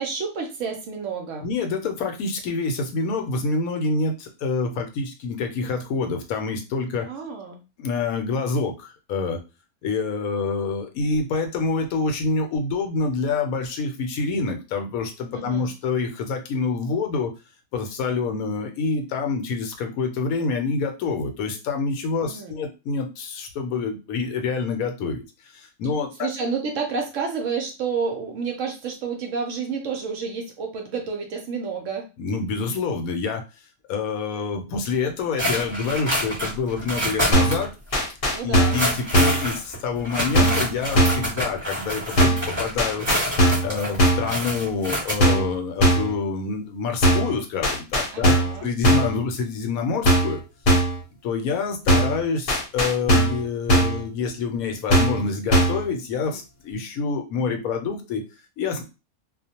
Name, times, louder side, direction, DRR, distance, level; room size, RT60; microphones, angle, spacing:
voice 1, 0.0-1.5 7.1-7.6 15.3-15.7 22.2-22.6 26.2-32.1 38.3-38.8 48.1-48.7, right 5 dB, 65° right, 2 dB, 0.8 m, -30 dB
voice 2, 1.4-7.1 7.8-9.4 9.8-17.3 17.7-25.2 25.5-26.3 32.2-33.4 33.9-37.7 38.4-43.1 43.6-50.4 51.2-58.2 58.6-58.8, left 4 dB, 75° left, 4 dB, 1.0 m, -27 dB
sound 1, 35.4-37.7 37.9-38.0 38.6-45.1, equal, 15° right, 1.1 m, -27 dB
sound 2, 37.3-37.6 37.9-38.8 39.1-39.5 40.3-40.7 40.9-41.3 42.2-42.5 42.8-43.7 44.0-44.3 45.2-45.5 45.8-46.1 47.0-47.3 47.6-48.6 48.8-49.2 50.0-50.4 50.7-51.0 51.9-52.2 52.5-53.4 53.7-54.0 54.9-55.2 55.5-55.8, right 1 dB, 45° left, 0.8 m, -19 dB
2.4 x 2.1 x 2.7 m, 0.28 s
omnidirectional pair, 1.6 m